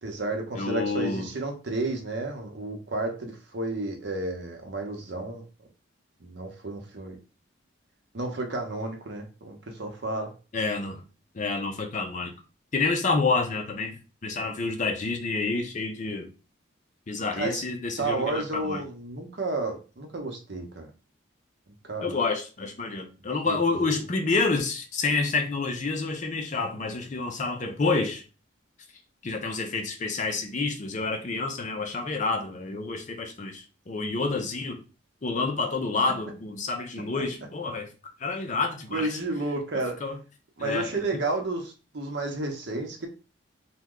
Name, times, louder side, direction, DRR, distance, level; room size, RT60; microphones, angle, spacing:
voice 1, 0.0-5.4 6.2-7.2 8.1-10.3 17.3-17.6 18.0-20.9 21.9-22.2 23.5-24.0 37.0-37.2 38.9-40.0 40.6-43.1, right 2 dB, 60° right, 3 dB, 0.8 m, -32 dB
voice 2, 0.5-1.3 10.5-11.0 11.3-12.3 12.7-16.3 17.1-18.8 22.0-28.2 29.2-34.8 35.2-37.9 38.2-39.2 40.0-40.2 40.6-41.2, left 3 dB, 40° left, 5 dB, 0.5 m, -28 dB
3.0 x 2.2 x 3.6 m, 0.33 s
head